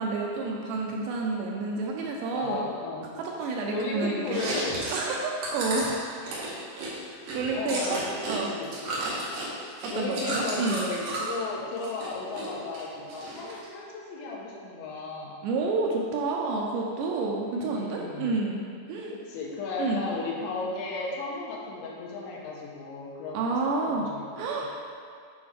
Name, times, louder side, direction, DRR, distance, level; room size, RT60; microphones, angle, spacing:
voice 1, 0.0-2.6 3.2-4.4 4.9-6.1 7.3-8.0 8.3-8.5 9.8-10.8 15.4-18.6 18.9-19.1 19.8-20.1 23.3-24.1 24.4-24.7, right 3 dB, 80° right, -1 dB, 2.6 m, -29 dB
voice 2, 2.3-3.1 3.4-4.8 7.5-8.8 9.9-15.3 17.5-18.3 19.1-24.7, left 3 dB, 80° left, -3 dB, 3.1 m, -35 dB
Chewing mastication, 4.2-8.4 8.6-11.3 11.7-12.5 12.7-13.7, right 2 dB, 65° right, 2.5 m, -33 dB
8.6 x 5.2 x 3.6 m, 2.2 s
omnidirectional pair, 5.3 m